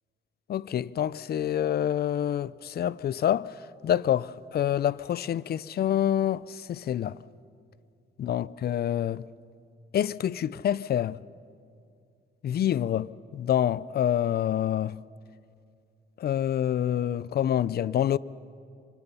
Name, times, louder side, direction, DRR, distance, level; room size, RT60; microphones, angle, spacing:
voice 1, 0.5-3.5 3.8-7.2 8.2-9.3 9.9-11.2 12.4-15.0 16.2-18.2, left 10 dB, 50° left, 0.5 m, -27 dB
26.5 x 25.0 x 5.6 m
cardioid pair, 90°, 20 cm